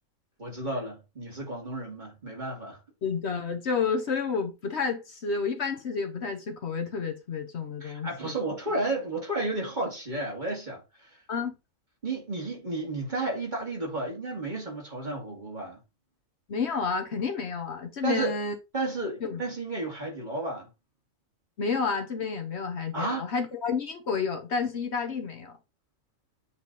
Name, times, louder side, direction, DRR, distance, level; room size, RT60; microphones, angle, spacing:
voice 1, 0.4-2.8 7.8-11.2 12.0-15.8 18.0-18.3 18.7-20.7 22.9-23.3, right 2 dB, 35° right, 2.5 m, -32 dB
voice 2, 3.0-8.3 11.3-11.5 16.5-18.5 19.2-19.4 21.6-25.5, left 5 dB, 55° left, 1.1 m, -30 dB
8.2 x 3.3 x 4.1 m
omnidirectional pair, 1.4 m